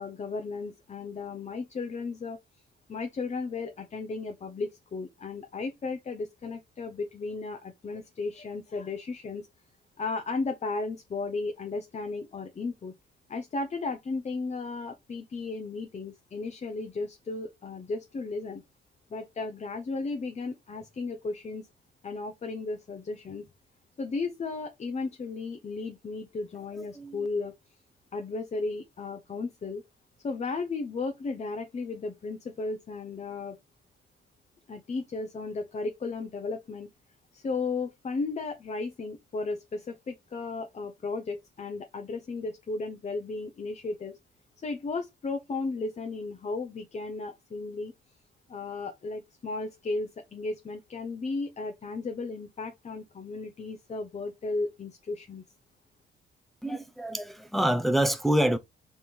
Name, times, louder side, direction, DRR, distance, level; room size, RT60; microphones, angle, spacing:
voice 1, 0.0-2.4 2.9-9.5 10.0-12.9 13.3-18.6 19.1-21.7 22.0-23.4 24.0-27.5 28.1-29.8 30.2-33.6 34.7-36.9 37.3-44.2 44.6-47.9 48.5-55.4, left 3 dB, 35° left, 0.8 m, -35 dB
voice 2, 26.9-27.3 56.6-58.6, right 1 dB, ahead, 0.6 m, -26 dB
3.6 x 3.0 x 4.0 m
cardioid pair, 90°, 20 cm